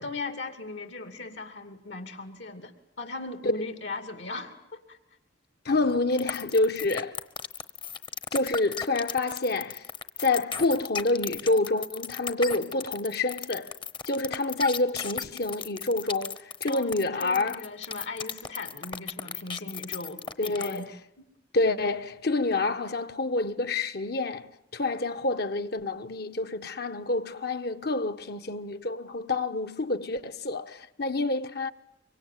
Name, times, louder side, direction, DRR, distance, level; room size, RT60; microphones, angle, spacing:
voice 1, 0.0-5.0 16.7-20.9 21.2-21.3, left 3 dB, 75° left, 2.7 m, -38 dB
voice 2, 5.6-7.2 8.3-9.8 10.2-13.7 14.1-17.6 20.4-20.9 21.5-31.7, left 2 dB, 60° left, 1.3 m, -28 dB
sound 1, 6.2-20.8, left 6 dB, 25° left, 1.0 m, -35 dB
25.0 x 24.5 x 9.3 m
head